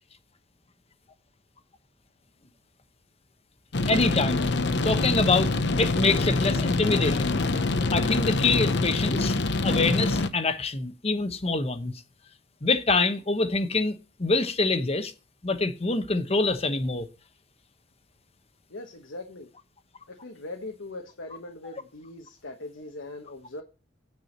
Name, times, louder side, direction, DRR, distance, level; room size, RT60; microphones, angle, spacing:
sound 1, 3.7-10.3, left 3 dB, 60° left, 0.8 m, -25 dB
voice 1, 3.9-4.4 4.8-5.5 5.8-7.3 7.9-9.4 9.6-11.9 12.6-15.1 15.4-17.1, left 3 dB, 30° left, 1.0 m, -25 dB
voice 2, 18.7-19.5 20.1-23.6, left 2 dB, 80° left, 1.3 m, -40 dB
9.4 x 4.8 x 7.3 m
head